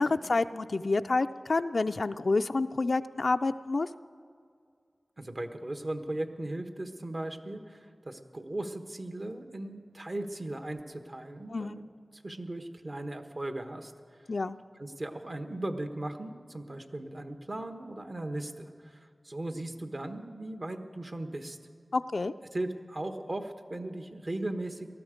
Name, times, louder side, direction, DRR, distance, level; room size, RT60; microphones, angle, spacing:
voice 1, 0.0-3.9 11.5-11.8 14.3-14.6 21.9-22.3, left 3 dB, 70° left, 9 dB, 0.3 m, -28 dB
voice 2, 5.2-11.8 12.1-13.9 14.8-21.6 22.5-24.9, right 1 dB, 50° right, 7 dB, 1.2 m, -37 dB
19.0 x 13.0 x 5.1 m, 2.2 s
cardioid pair, 40°, 0 cm